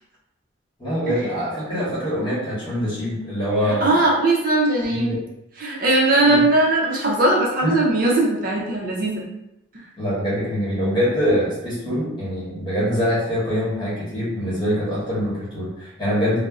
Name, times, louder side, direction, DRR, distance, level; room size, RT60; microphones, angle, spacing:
voice 1, 0.8-3.9 4.9-5.2 6.1-6.5 7.6-7.7 10.0-16.4, equal, 25° left, -8 dB, 1.1 m, -24 dB
voice 2, 3.7-5.2 5.6-9.2, right 2 dB, 45° right, -2 dB, 0.5 m, -19 dB
2.5 x 2.0 x 3.5 m, 0.85 s
head